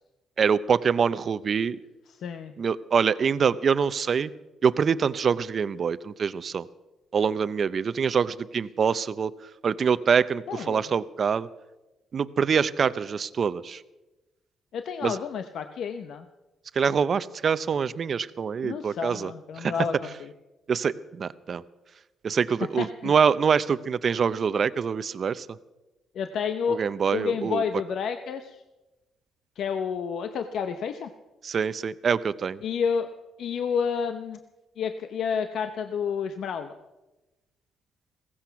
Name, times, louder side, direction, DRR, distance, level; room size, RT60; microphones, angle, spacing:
voice 1, 0.4-1.8 2.6-4.3 4.6-6.7 7.1-9.3 9.6-11.5 12.1-13.8 15.0-15.2 16.8-19.3 19.6-19.7 20.7-21.6 22.2-25.5 26.7-27.6 31.4-32.6, right 6 dB, 50° right, 16 dB, 0.6 m, -25 dB
voice 2, 2.1-2.5 10.5-10.9 14.7-16.3 18.6-20.3 22.8-23.1 26.1-26.8 27.1-28.6 29.6-31.1 32.6-33.1 33.4-34.4 34.8-36.7, left 6 dB, 70° left, 8 dB, 0.8 m, -30 dB
16.5 x 15.0 x 5.8 m, 1.1 s
cardioid pair, 90°, 0 cm